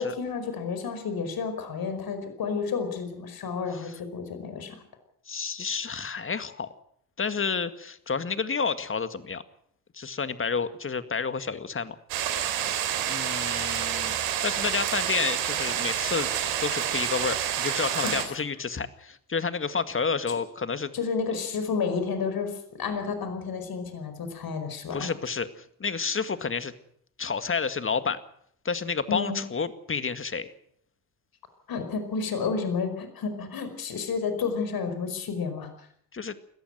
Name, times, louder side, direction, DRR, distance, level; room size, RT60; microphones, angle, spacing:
voice 1, 0.0-4.8 18.0-18.3 20.9-25.1 29.1-29.4 31.7-35.7, left 5 dB, 55° left, 8 dB, 5.1 m, -31 dB
voice 2, 5.3-6.7 7.2-9.4 9.9-12.0 13.1-16.3 16.6-20.9 24.9-26.7 27.2-28.2 28.7-30.5 36.1-36.3, left 5 dB, 30° left, 12 dB, 2.0 m, -30 dB
sound 1, 12.1-18.2, right 10 dB, 80° right, 3.4 m, -28 dB
21.0 x 14.5 x 9.2 m, 0.67 s
hypercardioid pair, 55°, 42 cm